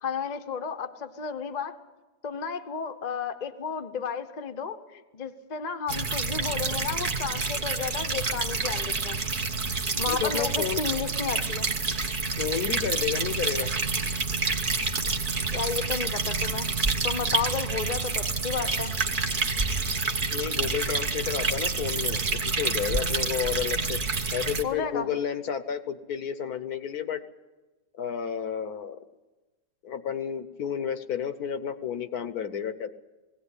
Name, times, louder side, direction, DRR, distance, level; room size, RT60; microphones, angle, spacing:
voice 1, 0.0-1.7 2.2-9.2 9.9-11.7 15.5-16.7 17.0-18.9 24.6-25.1, left 6 dB, 30° left, 8 dB, 0.8 m, -33 dB
sound 1, 5.9-24.6, right 4 dB, 35° right, 1.1 m, -28 dB
voice 2, 10.1-10.8 12.4-13.7 20.3-24.0 24.3-27.2 28.0-29.0 29.8-32.9, left 8 dB, 65° left, 11 dB, 1.3 m, -31 dB
19.5 x 17.0 x 9.7 m, 1.2 s
omnidirectional pair, 1.8 m